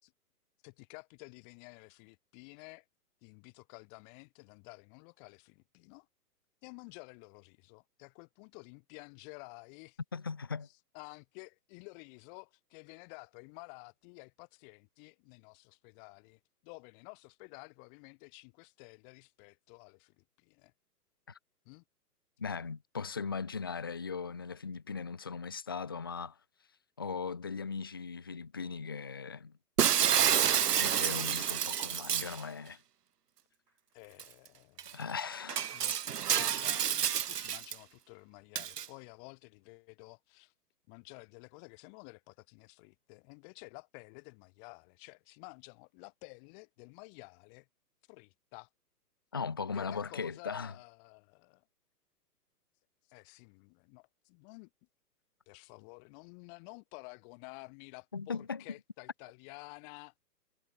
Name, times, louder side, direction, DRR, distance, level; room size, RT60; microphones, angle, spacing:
voice 1, 0.6-2.8 3.2-6.1 6.6-10.0 10.6-20.7 21.6-21.8 33.9-34.9 35.7-40.5 40.9-47.7 48.1-48.7 49.7-51.6 53.1-54.7 55.5-60.1, left 37 dB, 30° left, 5.1 m, -52 dB
voice 2, 10.1-10.7 21.3-21.4 22.4-26.4 27.0-29.6 30.7-32.8 34.9-35.8 49.3-50.7 58.1-58.6, left 5 dB, 15° left, 0.4 m, -38 dB
Shatter, 29.8-32.4 34.2-34.3 34.8-34.9 35.5-37.7 38.5-38.9, right 9 dB, 75° right, 1.0 m, -29 dB
hypercardioid pair, 130°, 48 cm